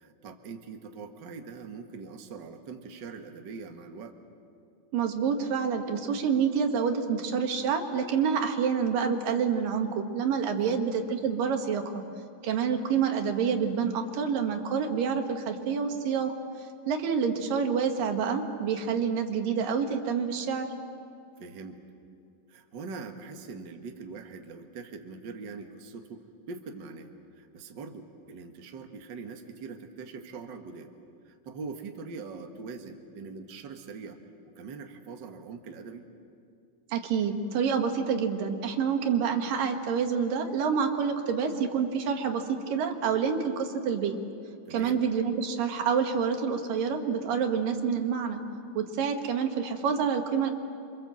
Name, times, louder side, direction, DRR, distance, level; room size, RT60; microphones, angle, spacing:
voice 1, 0.0-4.2 10.6-10.8 21.4-21.8 22.5-30.9 31.2-34.2 34.5-36.0 44.6-45.0, right 4 dB, 45° right, 4 dB, 1.5 m, -42 dB
voice 2, 4.9-12.0 12.4-16.3 16.9-20.7 36.9-44.2 44.7-48.4 48.8-50.5, right 6 dB, 75° right, 5 dB, 3.2 m, -27 dB
28.0 x 25.5 x 7.7 m, 2.4 s
omnidirectional pair, 4.0 m